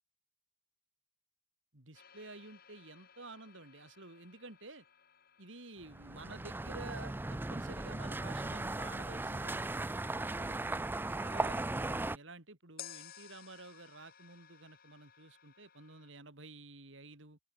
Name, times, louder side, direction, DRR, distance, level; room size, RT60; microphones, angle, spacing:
voice 1, 1.7-4.8 5.4-9.9 10.3-10.9 11.1-17.4, right 3 dB, 65° right, 3.2 m, -51 dB
sound 1, 1.9-9.9 12.8-16.1, left 10 dB, 50° left, 2.3 m, -57 dB
sound 2, 5.9-12.2, right 2 dB, 10° right, 0.3 m, -37 dB
open air
head